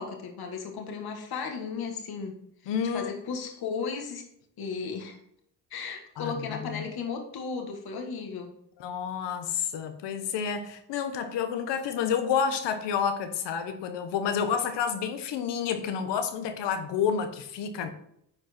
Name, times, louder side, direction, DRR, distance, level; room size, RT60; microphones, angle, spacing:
voice 1, 0.0-2.4 2.9-4.2 4.6-5.2 5.7-8.5, left 5 dB, 60° left, 3 dB, 1.8 m, -35 dB
voice 2, 2.7-3.1 6.2-6.9 8.8-17.9, left 7 dB, 85° left, 8 dB, 1.3 m, -29 dB
10.5 x 4.5 x 4.4 m, 0.72 s
cardioid pair, 100°, 41 cm